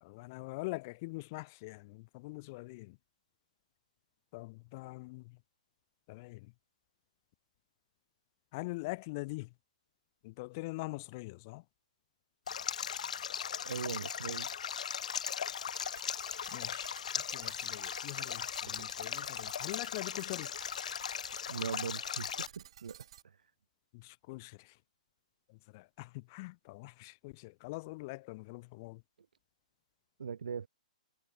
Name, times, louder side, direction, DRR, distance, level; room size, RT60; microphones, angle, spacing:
voice 1, 0.0-3.0 4.3-5.4 6.1-6.5 8.5-9.5 10.2-11.6 16.5-20.5 23.9-24.8 25.5-29.0, left 24 dB, 25° left, 1.3 m, -43 dB
Stream, 12.5-22.5, left 8 dB, 60° left, 1.4 m, -38 dB
voice 2, 13.6-14.5 21.5-23.5 30.2-30.7, right 6 dB, 80° right, 3.7 m, -40 dB
sound 1, 15.7-23.2, right 11 dB, 40° right, 5.4 m, -56 dB
hypercardioid pair, 175°, 4 cm